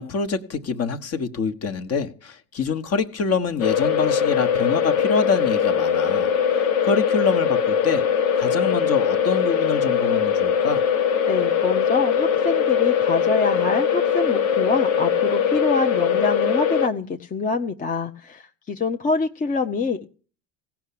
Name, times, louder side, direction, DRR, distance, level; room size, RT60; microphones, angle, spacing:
voice 1, 0.0-6.3 6.8-8.0 8.4-10.8, left 5 dB, 40° left, 12 dB, 1.2 m, -25 dB
sound 1, 3.6-16.9, left 7 dB, 85° left, 1.1 m, -21 dB
voice 2, 11.3-20.1, left 4 dB, 20° left, 5 dB, 0.7 m, -25 dB
16.5 x 5.9 x 8.4 m, 0.40 s
hypercardioid pair, 85°, 39 cm